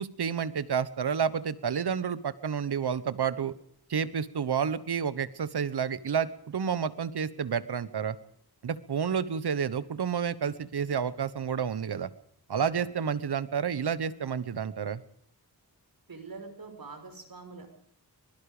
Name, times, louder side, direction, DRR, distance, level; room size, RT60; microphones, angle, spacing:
voice 1, 0.0-3.5 3.9-8.2 8.6-12.1 12.5-15.0, right 7 dB, 90° right, 16 dB, 1.3 m, -30 dB
voice 2, 16.1-17.7, right 4 dB, 65° right, 7 dB, 5.7 m, -44 dB
24.5 x 22.0 x 5.1 m, 0.65 s
wide cardioid pair, 75°, 38 cm